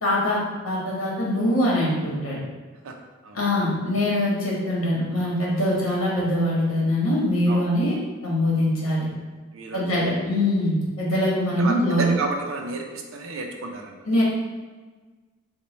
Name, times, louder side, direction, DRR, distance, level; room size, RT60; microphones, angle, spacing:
voice 1, 0.0-2.4 3.3-8.0 8.2-9.1 9.7-12.1 14.1-14.2, left 1 dB, 70° left, -5 dB, 1.0 m, -23 dB
voice 2, 9.5-9.9 11.6-14.0, right 3 dB, 70° right, 3 dB, 0.5 m, -31 dB
3.0 x 2.1 x 4.1 m, 1.4 s
head